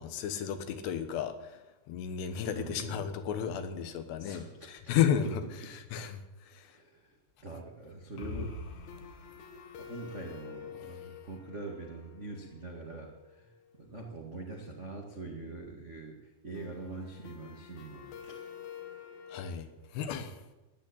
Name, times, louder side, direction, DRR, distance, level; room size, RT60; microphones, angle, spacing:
voice 1, 0.0-1.6 1.9-6.2 6.5-6.7 19.3-19.7 19.9-20.4, left 8 dB, 80° left, 9 dB, 3.4 m, -33 dB
sound 1, 2.3-3.5 3.8-3.9 4.2-4.3 8.2-13.8 16.6-19.5, left 6 dB, 60° left, 2.2 m, -47 dB
voice 2, 2.5-3.0 4.2-4.7 6.6-8.5 9.8-18.4, right 3 dB, 85° right, 1 dB, 0.6 m, -44 dB
15.5 x 10.5 x 8.9 m, 1.1 s
omnidirectional pair, 4.8 m